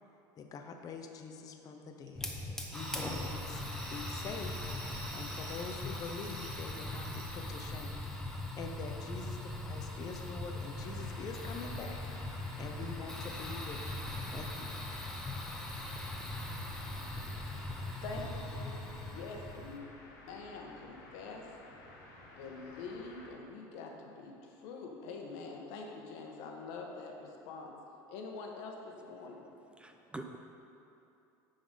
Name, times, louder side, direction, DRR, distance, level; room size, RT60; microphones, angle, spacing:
voice 1, 0.4-2.3 2.7-4.6 5.1-12.3 12.6-14.0 14.3-14.8, left 4 dB, 35° left, 4 dB, 0.7 m, -45 dB
sound 1, 2.1-6.8 7.0-7.3, right 4 dB, 85° right, 1.1 m, -51 dB
Fire, 2.2-19.8, left 1 dB, 5° left, 0.8 m, -40 dB
sound 2, 10.8-23.3, left 2 dB, 90° left, 1.8 m, -54 dB
voice 2, 18.0-19.8 20.3-21.4 22.4-27.7 28.1-29.4, left 4 dB, 75° left, 1 dB, 1.1 m, -45 dB
voice 3, 29.0-30.4, right 2 dB, 10° right, 5 dB, 0.4 m, -48 dB
9.9 x 4.0 x 5.3 m, 2.8 s
supercardioid pair, 115°, 10 cm